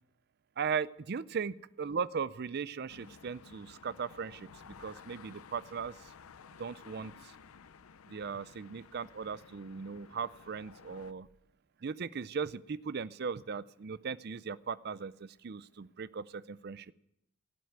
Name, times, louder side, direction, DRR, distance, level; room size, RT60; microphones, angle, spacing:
voice 1, 0.6-4.5 4.8-5.9 6.6-7.3 8.1-11.3 11.8-16.9, right 6 dB, 50° right, 16 dB, 0.5 m, -38 dB
sound 1, 2.9-11.1, left 6 dB, 80° left, 0.6 m, -55 dB
16.5 x 7.8 x 9.4 m, 0.80 s
head